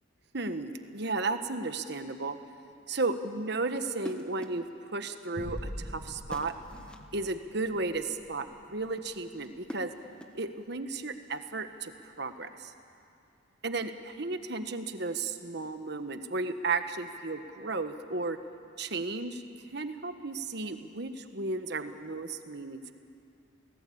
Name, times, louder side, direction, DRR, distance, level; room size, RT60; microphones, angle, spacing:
voice 1, 0.3-2.4 2.9-4.6 4.9-6.5 7.1-9.9 10.3-12.7 13.6-18.4 18.8-19.4 19.7-22.9, right 3 dB, 55° right, 8 dB, 1.3 m, -34 dB
sound 1, 4.1-4.7 6.3-7.1 9.4-10.5, equal, 5° left, 1.2 m, -44 dB
sound 2, 5.4-10.2, equal, 55° left, 4.1 m, -45 dB
29.5 x 19.0 x 8.7 m, 2.5 s
head